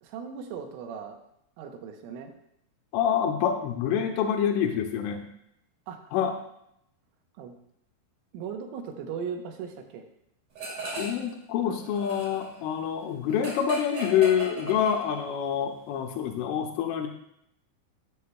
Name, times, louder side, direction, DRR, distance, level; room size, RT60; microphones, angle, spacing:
voice 1, 0.0-1.2 1.6-2.3 5.9-6.0 7.4-7.5 8.3-10.0 11.6-11.8, right 6 dB, 85° right, 4 dB, 3.4 m, -38 dB
voice 2, 2.9-5.2 6.1-6.4 10.9-17.1, left 8 dB, 90° left, 4 dB, 3.3 m, -26 dB
sound 1, 10.6-11.3 11.6-15.4, right 3 dB, 40° right, 3.0 m, -37 dB
13.0 x 8.3 x 2.3 m, 0.77 s
omnidirectional pair, 5.6 m